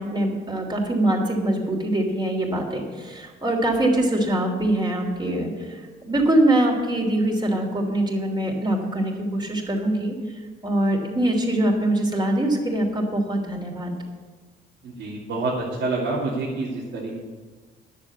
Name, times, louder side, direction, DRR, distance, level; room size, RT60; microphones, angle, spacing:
voice 1, 0.0-10.1 10.6-13.9, right 1 dB, 20° right, 1 dB, 3.2 m, -23 dB
voice 2, 15.0-15.5 15.8-17.2, right 3 dB, 75° right, -7 dB, 2.7 m, -27 dB
10.5 x 7.5 x 8.5 m, 1.4 s
cardioid pair, 90°, 20 cm